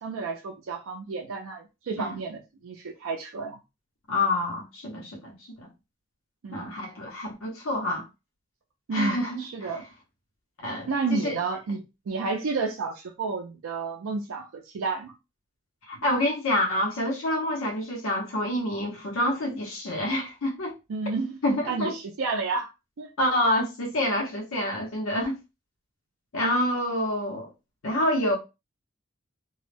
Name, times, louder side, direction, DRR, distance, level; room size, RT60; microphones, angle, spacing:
voice 1, 0.0-3.6 6.4-6.7 8.9-9.8 10.9-15.1 20.9-21.3 21.7-22.7 23.0-23.1, right 4 dB, 85° right, 0.4 m, -31 dB
voice 2, 4.1-5.7 6.5-8.0 8.9-9.7 10.6-11.4 15.9-20.7 21.4-21.9 23.2-25.4 26.3-27.5 27.8-28.4, left 1 dB, 85° left, 0.7 m, -27 dB
2.2 x 2.0 x 3.2 m
head